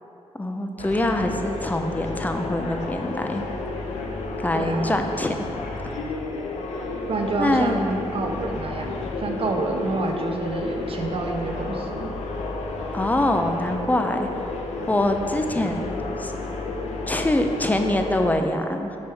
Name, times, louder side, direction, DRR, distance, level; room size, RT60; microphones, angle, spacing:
voice 1, 0.3-3.5 4.4-5.4 7.4-7.7 12.9-14.3 14.9-16.3 17.1-19.0, left 1 dB, 15° left, 5 dB, 0.6 m, -24 dB
sound 1, 0.8-18.3, left 3 dB, 85° left, 0.7 m, -31 dB
voice 2, 4.5-5.0 7.1-12.1, right 3 dB, 55° right, 2 dB, 0.9 m, -28 dB
6.6 x 5.4 x 4.5 m, 2.8 s
cardioid pair, 85°, 11 cm